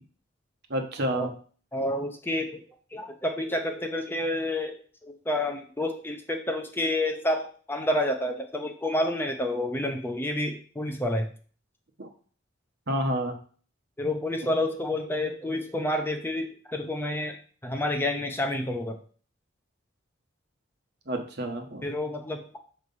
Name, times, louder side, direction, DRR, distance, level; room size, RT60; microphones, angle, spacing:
voice 1, 0.7-1.3 12.0-12.1 12.9-13.3 21.1-21.9, right 1 dB, 55° right, 4 dB, 1.1 m, -29 dB
voice 2, 1.7-2.6 2.9-11.3 14.0-19.0 21.8-22.6, left 1 dB, 10° left, 4 dB, 0.5 m, -29 dB
6.5 x 3.2 x 5.3 m, 0.43 s
head